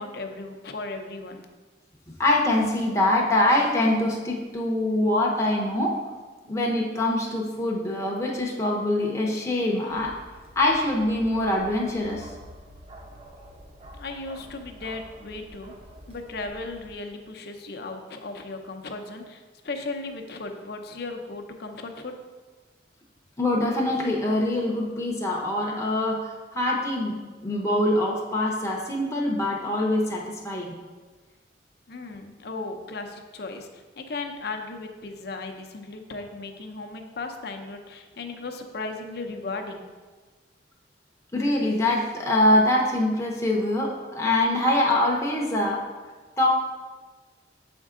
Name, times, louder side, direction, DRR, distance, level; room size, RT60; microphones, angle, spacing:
voice 1, 0.0-1.5 13.9-15.7 16.1-22.2 31.9-39.8, left 3 dB, 55° left, 4 dB, 0.6 m, -36 dB
voice 2, 2.1-6.0 6.5-10.1 10.6-12.3 23.4-30.7 41.3-45.8 46.4-46.5, left 1 dB, 15° left, -2 dB, 0.7 m, -24 dB
Bark, 9.9-16.9, equal, 30° right, 0.7 m, -47 dB
7.2 x 4.4 x 3.7 m, 1.4 s
head